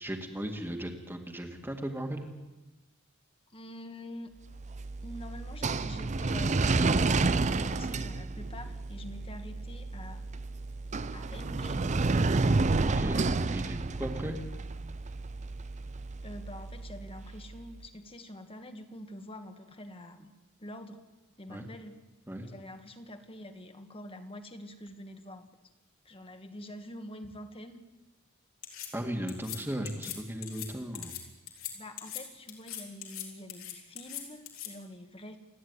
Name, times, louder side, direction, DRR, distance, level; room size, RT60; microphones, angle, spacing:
voice 1, 0.0-2.3 12.8-14.4 21.5-21.7 22.3-22.5 28.9-31.1, equal, 10° right, 4 dB, 2.0 m, -37 dB
voice 2, 3.5-4.3 5.0-7.2 7.6-10.2 11.1-12.0 16.2-20.3 20.6-21.0 21.4-22.0 22.4-25.5 26.0-27.8 31.7-35.4, left 1 dB, 25° left, 7 dB, 1.6 m, -46 dB
sound 1, 4.5-17.6, right 3 dB, 35° right, 0.6 m, -30 dB
sound 2, 28.6-28.9 29.3-29.6 29.9-30.2 30.4-30.7 31.0-31.2 31.5-31.7 32.0-32.2 32.5-33.2 33.5-34.7, left 11 dB, 85° left, 3.7 m, -40 dB
28.0 x 10.0 x 9.6 m, 1.1 s
head